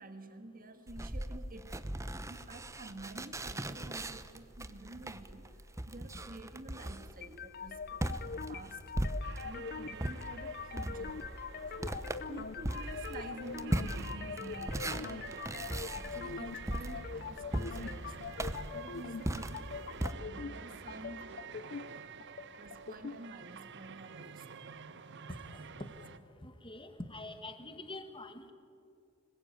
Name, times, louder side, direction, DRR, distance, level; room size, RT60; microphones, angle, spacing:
voice 1, 0.0-1.8 2.3-5.5 5.9-8.8 9.4-11.3 11.8-12.0 12.3-15.4 15.6-19.8 20.2-21.3 22.2-22.3 22.6-24.6, right 2 dB, 45° right, 8 dB, 1.8 m, -49 dB
sound 1, 0.9-9.6 10.0-20.1, right 1 dB, 15° right, 0.9 m, -39 dB
sound 2, 7.2-23.2, left 6 dB, 50° left, 0.5 m, -43 dB
sound 3, 9.2-26.2, right 6 dB, 60° right, 1.0 m, -49 dB
voice 2, 10.9-12.1 25.5-25.9 26.4-28.5, left 2 dB, 25° left, 8 dB, 1.8 m, -47 dB
26.0 x 21.0 x 9.0 m, 2.5 s
head